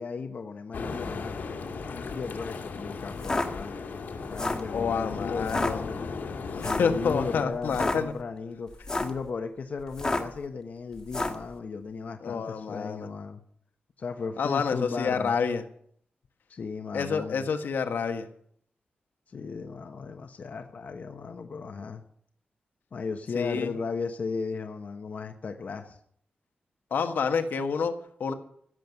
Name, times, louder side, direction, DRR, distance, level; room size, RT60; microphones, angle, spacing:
voice 1, 0.0-1.4 1.9-3.8 4.3-6.1 6.5-8.7 9.0-13.4 14.0-15.4 16.5-17.5 19.3-22.0 22.9-26.0, left 5 dB, 50° left, 6 dB, 1.1 m, -36 dB
sound 1, 0.7-7.4, left 4 dB, 70° left, 2.1 m, -36 dB
sound 2, 3.2-3.5 4.2-4.7 5.4-5.7 6.6-6.9 7.6-8.0 8.7-9.2 9.9-10.4 11.1-11.4, left 2 dB, 20° left, 1.6 m, -29 dB
voice 2, 4.7-5.8 6.6-8.1 12.2-13.1 14.4-15.6 16.9-18.2 23.3-23.7 26.9-28.3, left 6 dB, 85° left, 6 dB, 1.6 m, -28 dB
16.0 x 7.6 x 9.7 m, 0.65 s
wide cardioid pair, 170°, 3 cm